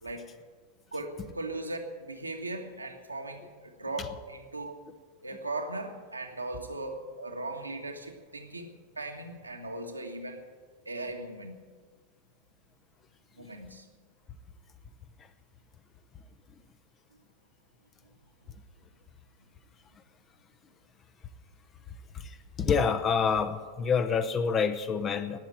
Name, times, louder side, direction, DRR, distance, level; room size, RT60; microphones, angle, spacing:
voice 1, 0.9-4.8 5.2-10.4 10.8-11.6 13.4-13.8, right 2 dB, 85° right, 2 dB, 1.7 m, -38 dB
voice 2, 22.6-25.4, left 6 dB, 25° left, 11 dB, 1.0 m, -27 dB
18.5 x 7.1 x 8.9 m, 1.5 s
figure-of-eight pair, 90°, 0 cm